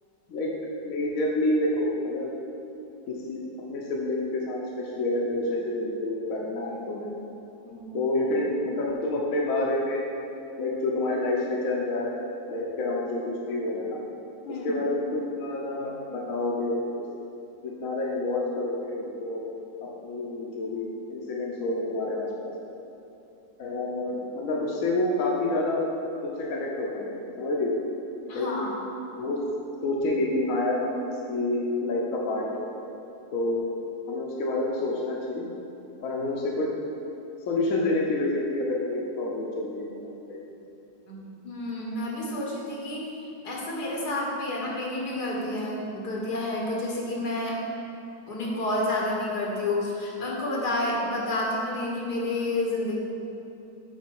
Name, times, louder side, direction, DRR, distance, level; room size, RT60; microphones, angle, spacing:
voice 1, 0.8-2.3 3.1-3.4 3.7-7.1 7.9-10.2 10.6-14.0 14.5-16.9 17.6-19.4 19.8-22.5 23.6-25.9 26.2-27.8 28.3-28.5 29.2-29.4 29.8-31.0 31.3-32.6 33.3-33.7 34.1-35.5 36.0-36.7 37.4-40.4, left 2 dB, 65° left, -3 dB, 1.2 m, -28 dB
voice 2, 7.6-8.0 14.5-14.7 28.3-28.8 41.1-41.2 41.4-43.1 43.4-47.6 48.3-52.9, left 1 dB, 80° left, -3 dB, 1.9 m, -30 dB
8.3 x 4.7 x 4.7 m, 2.8 s
omnidirectional pair, 1.7 m